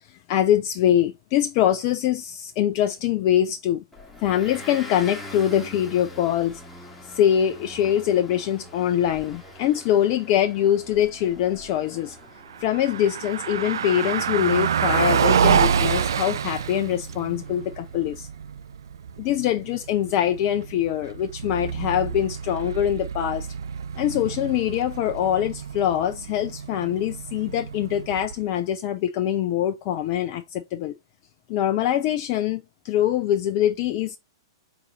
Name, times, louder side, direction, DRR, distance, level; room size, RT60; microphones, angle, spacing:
voice 1, 0.3-3.8 4.2-6.6 7.1-12.2 12.6-18.3 19.2-23.5 24.0-30.9 31.5-34.2, left 11 dB, 40° left, 0.4 m, -23 dB
Motor vehicle (road) / Engine, 3.9-18.1, left 1 dB, 5° left, 1.2 m, -44 dB
Car passing by, 12.4-28.6, right 7 dB, 65° right, 0.4 m, -27 dB
4.7 x 3.9 x 2.9 m
figure-of-eight pair, 105°, 2 cm